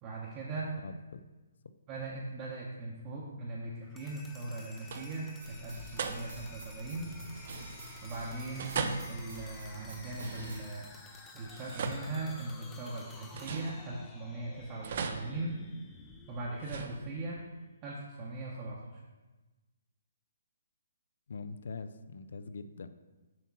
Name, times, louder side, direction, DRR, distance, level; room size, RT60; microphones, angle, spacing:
voice 1, 0.0-0.7 1.9-7.1 8.0-8.8 9.1-10.9 11.3-15.6 16.3-17.4 17.8-19.0, right 2 dB, 25° right, -5 dB, 0.8 m, -39 dB
voice 2, 0.8-1.2 21.3-22.9, left 4 dB, 70° left, 11 dB, 0.4 m, -43 dB
sound 1, 3.8-17.7, left 3 dB, 10° left, 0.5 m, -53 dB
sound 2, 4.1-4.5 4.8-5.4 6.0-6.6 7.4-8.1 8.6-10.8 11.4-12.8 13.3-14.3 14.8-16.1 16.6-17.5, right 5 dB, 45° right, 0.5 m, -40 dB
sound 3, 5.4-10.6, right 1 dB, 85° right, 2.2 m, -47 dB
7.3 x 3.0 x 6.0 m, 1.2 s
hypercardioid pair, 165°, 0 cm